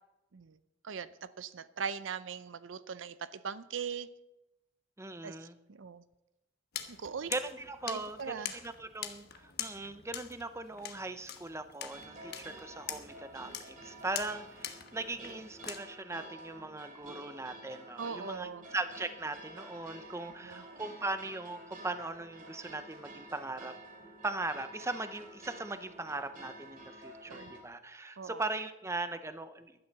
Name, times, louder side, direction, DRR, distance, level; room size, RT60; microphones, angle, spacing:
voice 1, 0.8-4.1 5.2-6.0 6.9-7.3 7.9-8.6 18.0-18.6 20.4-20.6 27.3-27.5 28.2-28.4, right 6 dB, 70° right, 15 dB, 0.5 m, -40 dB
voice 2, 5.0-5.6 7.3-23.8 24.2-29.8, right 2 dB, 15° right, 11 dB, 0.7 m, -39 dB
sound 1, 6.7-15.8, left 9 dB, 55° left, 1.2 m, -44 dB
sound 2, 11.8-27.6, right 1 dB, 45° right, 2.9 m, -50 dB
15.5 x 12.0 x 4.1 m, 0.94 s
head